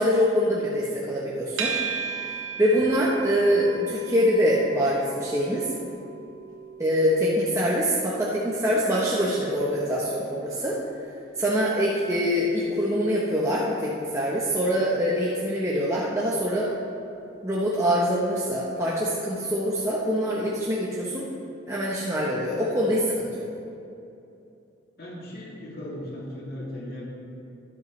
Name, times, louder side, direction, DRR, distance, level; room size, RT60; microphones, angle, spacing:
voice 1, 0.0-1.7 2.6-5.7 6.8-10.8 11.4-16.7 17.4-21.3 21.7-23.5, equal, 15° right, -6 dB, 1.0 m, -24 dB
sound 1, 1.6-18.8, right 6 dB, 80° right, 1.7 m, -40 dB
voice 2, 25.0-27.0, left 1 dB, 50° left, -5 dB, 2.7 m, -37 dB
13.0 x 11.0 x 3.2 m, 2.7 s
head